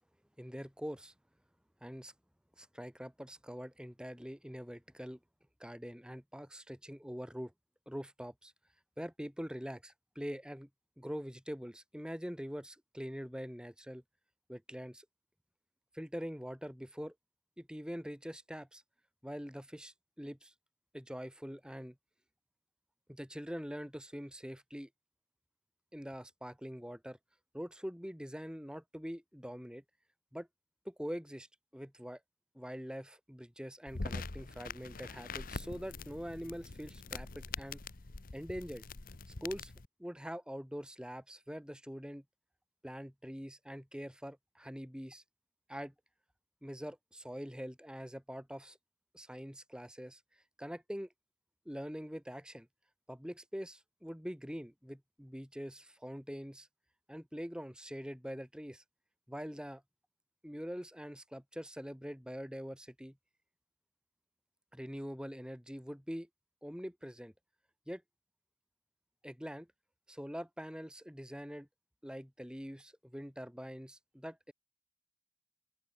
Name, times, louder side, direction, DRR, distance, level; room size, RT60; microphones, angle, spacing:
voice 1, 0.4-1.1 1.8-2.1 2.6-5.2 5.6-7.5 7.9-8.5 9.0-10.7 11.0-14.0 14.5-15.1 15.9-17.1 17.6-18.8 19.2-20.5 20.9-22.0 23.1-24.9 25.9-27.2 27.5-29.8 30.3-30.5 30.8-31.5 31.7-32.2 32.5-37.8 38.3-38.8 39.3-39.7 40.0-42.2 42.8-45.2 45.7-45.9 46.6-48.8 49.1-50.2 50.6-51.1 51.7-52.7 53.1-56.7 57.1-58.8 59.3-59.8 60.4-63.2 64.7-66.3 66.6-67.3 67.9-68.0 69.2-69.7 70.1-71.7 72.0-74.5, equal, 5° right, 4.3 m, -44 dB
sound 1, 33.9-39.9, left 4 dB, 50° left, 1.0 m, -44 dB
open air
head